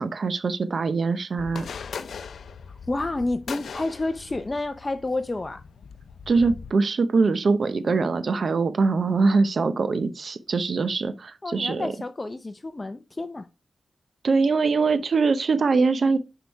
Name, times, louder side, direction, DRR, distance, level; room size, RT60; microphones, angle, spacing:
voice 1, 0.0-1.7 6.3-11.9 14.2-16.2, right 4 dB, 65° right, 0.7 m, -23 dB
sound 1, 1.4-6.7, left 6 dB, 85° left, 0.6 m, -40 dB
voice 2, 2.9-5.6 11.4-13.5, left 2 dB, 30° left, 0.6 m, -29 dB
6.3 x 5.1 x 4.6 m
cardioid pair, 60°, 0 cm